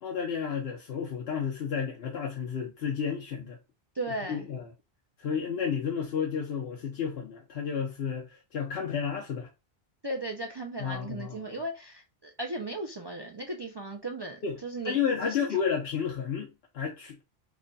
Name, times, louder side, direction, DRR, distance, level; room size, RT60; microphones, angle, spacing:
voice 1, 0.0-3.6 4.3-4.7 5.2-9.5 10.8-11.6 14.4-14.5 14.8-17.2, left 7 dB, 75° left, 0.9 m, -32 dB
voice 2, 3.9-4.5 10.0-15.0 15.2-15.5, right 2 dB, 45° right, 0.3 m, -36 dB
3.2 x 2.2 x 3.9 m
omnidirectional pair, 1.1 m